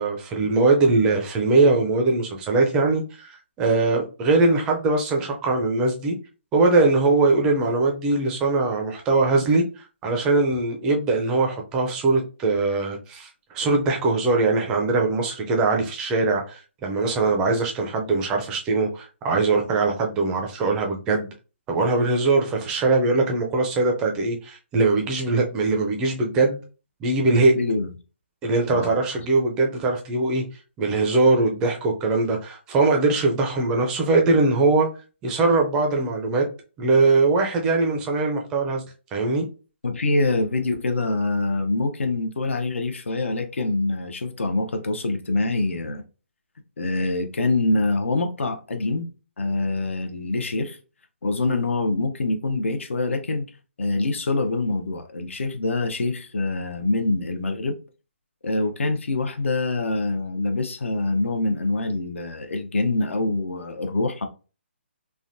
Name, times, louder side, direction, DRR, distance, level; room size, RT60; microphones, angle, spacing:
voice 1, 0.0-6.2 6.5-21.3 21.7-26.6 27.0-27.5 28.4-30.4 30.8-34.9 35.2-36.5 36.8-38.8 39.1-39.5, right 3 dB, 10° right, 0.4 m, -21 dB
voice 2, 27.5-27.9 28.7-28.9 39.8-46.0 46.8-49.1 49.4-50.8 51.2-53.5 53.8-57.8 58.4-64.3, left 2 dB, 85° left, 0.6 m, -25 dB
3.3 x 2.1 x 2.5 m
hypercardioid pair, 165°, 7 cm